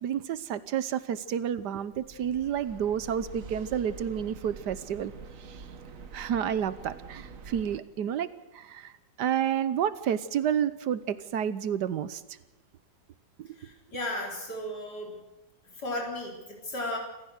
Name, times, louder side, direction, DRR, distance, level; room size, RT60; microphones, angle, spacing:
voice 1, 0.0-5.1 5.5-5.6 6.1-8.3 8.5-8.9 9.2-12.2 13.4-13.6, right 9 dB, 70° right, 15 dB, 1.4 m, -30 dB
sound 1, 1.9-7.8, right 5 dB, 50° right, 1.6 m, -45 dB
voice 2, 13.6-15.2 15.8-17.0, left 1 dB, 60° left, 0 dB, 4.8 m, -35 dB
27.0 x 15.0 x 6.5 m, 1.1 s
omnidirectional pair, 2.0 m